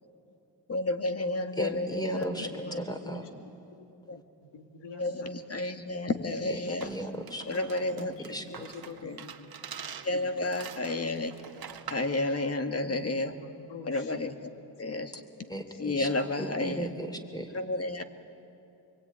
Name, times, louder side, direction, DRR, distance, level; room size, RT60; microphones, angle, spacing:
voice 1, 0.7-2.8 4.1-4.2 5.0-6.9 7.5-8.1 8.5-8.6 9.0-9.2 10.0-11.3 11.9-13.4 13.8-14.5 14.8-15.2 15.8-16.9 17.5-18.0, left 2 dB, 35° left, 7 dB, 1.9 m, -31 dB
voice 2, 1.6-3.2 6.5-7.5 8.0-8.6 15.5-16.1 16.4-17.5, right 1 dB, 10° left, 6 dB, 3.3 m, -36 dB
voice 3, 2.1-3.1 3.6-4.2 4.5-5.6 7.9-9.5 10.0-10.5 12.8-13.1 13.3-14.1 14.6-14.7 15.7-15.8, left 4 dB, 75° left, 4 dB, 2.7 m, -48 dB
sound 1, 6.8-12.1, right 8 dB, 55° right, 1.6 m, -45 dB
24.5 x 23.0 x 9.6 m, 2.7 s
cardioid pair, 80°, 43 cm